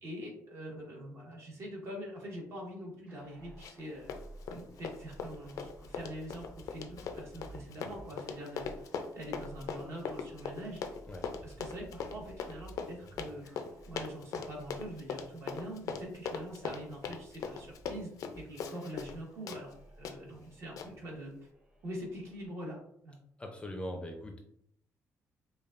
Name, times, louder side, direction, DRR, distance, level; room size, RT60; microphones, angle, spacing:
voice 1, 0.0-4.1 4.5-8.7 9.1-11.0 11.4-13.5 13.8-21.3 21.8-23.2, equal, 50° right, -2 dB, 1.5 m, -44 dB
sound 1, 3.1-22.5, right 1 dB, 20° right, 1.0 m, -55 dB
Run, 3.6-3.8 4.1-19.2 19.5-19.6 20.0-20.2 20.8-20.9, left 6 dB, 70° left, 0.4 m, -40 dB
voice 2, 23.4-24.4, equal, 20° left, 3 dB, 0.5 m, -41 dB
5.2 x 2.3 x 2.5 m, 0.68 s
cardioid pair, 125°, 6 cm